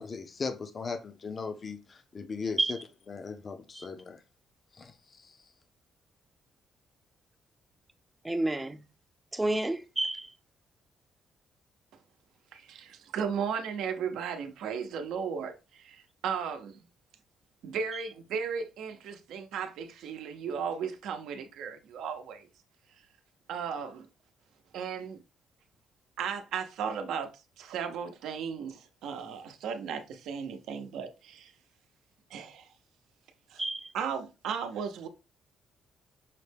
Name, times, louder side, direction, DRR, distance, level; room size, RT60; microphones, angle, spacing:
voice 1, 0.0-2.8 3.1-4.2 4.7-5.5, left 4 dB, 40° left, 0.5 m, -38 dB
voice 2, 8.2-8.8 9.3-10.3 33.6-33.9, right 2 dB, 15° right, 0.5 m, -30 dB
voice 3, 12.5-16.8 17.6-22.5 23.5-24.1 24.7-25.2 26.2-27.3 27.6-31.5 32.3-32.7 33.5-33.6 33.9-35.1, right 7 dB, 85° right, 0.7 m, -35 dB
5.7 x 2.1 x 3.3 m
cardioid pair, 90°, 0 cm